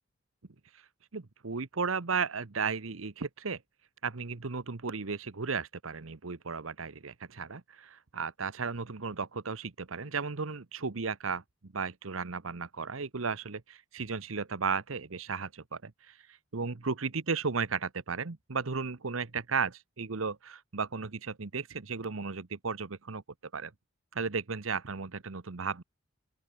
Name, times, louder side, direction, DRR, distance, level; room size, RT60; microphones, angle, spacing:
voice 1, 1.1-3.6 4.0-16.1 16.5-23.2 23.5-23.7 24.1-25.8, right 5 dB, 85° right, 1.0 m, -35 dB
open air
head